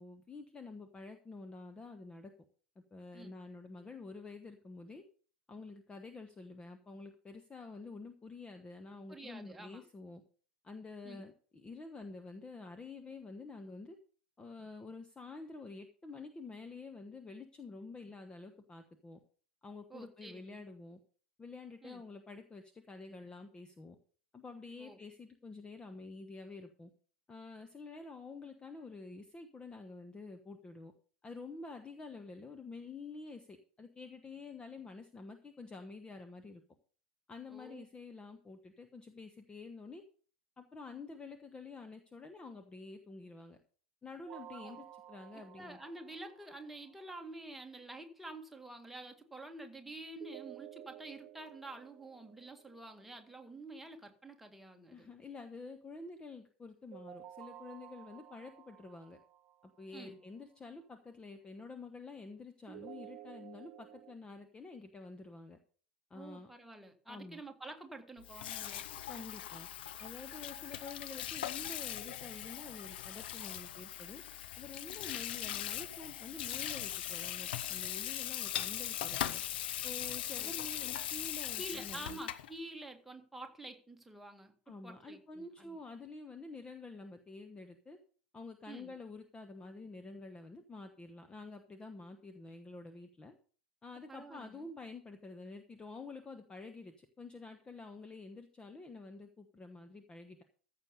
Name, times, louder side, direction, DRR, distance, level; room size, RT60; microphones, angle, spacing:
voice 1, 0.0-2.3 2.9-5.0 5.5-10.2 10.6-14.0 14.4-19.2 19.6-21.0 21.4-24.0 24.3-26.9 27.3-30.9 31.2-36.6 37.3-40.0 40.6-43.6 44.0-45.8 54.9-59.2 59.6-65.6 66.1-66.5 67.1-67.4 69.1-69.7 70.0-74.2 74.6-79.4 79.8-82.2 84.7-88.0 88.3-93.3 93.8-100.4, left 3 dB, 15° left, 7 dB, 1.1 m, -49 dB
voice 2, 9.1-9.8 11.0-11.2 19.9-20.6 21.8-22.0 24.8-25.0 37.5-37.8 44.5-44.8 45.6-55.1 59.9-60.2 66.1-68.9 80.3-80.5 81.6-84.5 84.8-85.8 88.7-88.9 94.1-94.7, right 2 dB, 5° right, 3 dB, 1.9 m, -49 dB
sound 1, 44.3-47.2 50.2-53.2 56.9-60.1 62.7-64.2, right 12 dB, 40° right, 0.6 m, -53 dB
Water tap faucet / Sink (filling or washing), 68.2-82.5, left 12 dB, 60° left, 0.7 m, -40 dB
14.5 x 6.8 x 5.3 m, 0.44 s
figure-of-eight pair, 85°, 6 cm